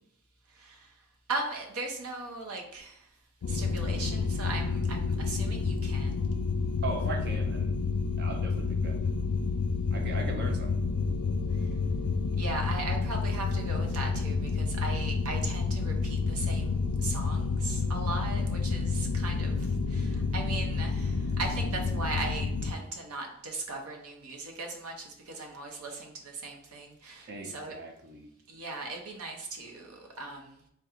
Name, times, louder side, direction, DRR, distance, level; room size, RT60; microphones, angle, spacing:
voice 1, 0.6-0.9 1.3-3.1 3.5-6.3 12.4-27.8 28.5-30.6, right 3 dB, 80° right, 2 dB, 0.8 m, -38 dB
sound 1, 3.4-22.7, left 4 dB, 85° left, 0.4 m, -29 dB
voice 2, 6.8-7.9 8.2-9.1 9.9-10.8 27.3-28.3, right 2 dB, 50° right, 3 dB, 0.6 m, -39 dB
3.6 x 2.2 x 4.4 m, 0.75 s
head